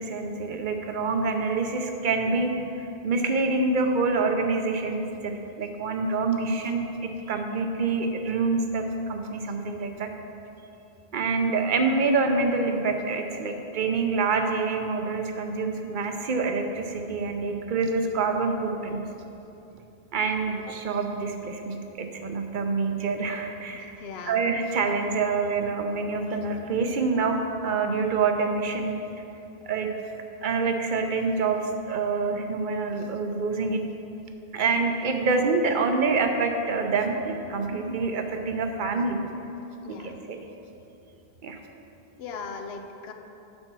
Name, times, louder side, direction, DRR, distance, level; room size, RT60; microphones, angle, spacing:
voice 1, 0.0-6.8 7.3-10.1 11.1-19.0 20.1-24.0 24.2-28.9 29.7-29.9 30.4-31.6 31.9-33.8 34.5-39.2 39.9-40.4 41.4-41.6, right 4 dB, 55° right, 4 dB, 0.8 m, -26 dB
voice 2, 23.7-24.4 39.8-40.2 42.2-43.1, left 4 dB, 85° left, 5 dB, 0.9 m, -39 dB
8.8 x 4.3 x 6.0 m, 2.9 s
omnidirectional pair, 1.0 m